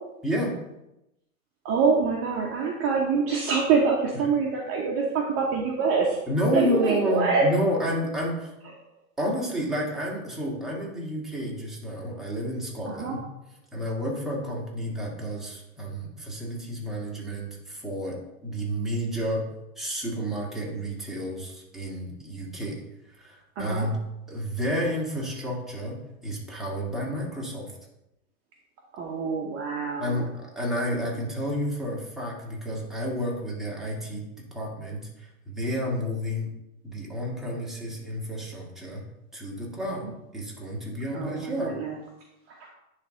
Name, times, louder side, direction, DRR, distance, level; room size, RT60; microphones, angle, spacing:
voice 1, 0.2-0.5 6.3-8.5 9.2-13.2 13.7-19.5 19.8-24.0 24.3-27.7 30.0-34.3 34.5-36.5 36.8-39.0 39.3-41.7, equal, ahead, -4 dB, 1.9 m, -30 dB
voice 2, 1.6-6.2 6.5-7.4 12.9-13.2 23.6-23.9 28.9-30.2 39.8-40.1 41.1-42.0 42.5-42.7, right 5 dB, 30° right, 0 dB, 0.9 m, -25 dB
10.0 x 3.4 x 3.8 m, 0.91 s
hypercardioid pair, 105°, 44 cm